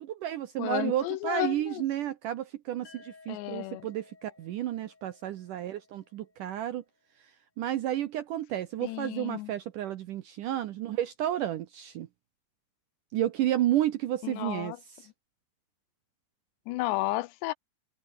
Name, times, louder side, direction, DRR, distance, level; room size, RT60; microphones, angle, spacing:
voice 1, 0.0-6.8 7.6-12.1 13.1-14.8, right 12 dB, 80° right, 1.9 m, -31 dB
voice 2, 0.6-1.8 3.3-3.9 8.8-9.5 14.2-14.8 16.7-17.5, left 19 dB, 85° left, 2.9 m, -32 dB
sound 1, 2.9-6.7, left 4 dB, 55° left, 8.9 m, -57 dB
omnidirectional pair, 5.1 m